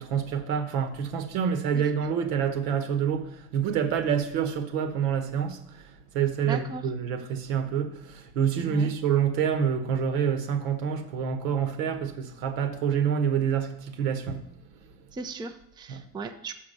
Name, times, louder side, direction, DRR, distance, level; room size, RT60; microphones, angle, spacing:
voice 1, 0.0-14.4 15.9-16.0, right 7 dB, 80° right, 7 dB, 1.2 m, -27 dB
voice 2, 6.4-6.9 8.7-8.9 15.1-16.5, right 3 dB, 10° right, 7 dB, 0.4 m, -37 dB
5.9 x 5.8 x 6.6 m, 0.75 s
supercardioid pair, 110°, 41 cm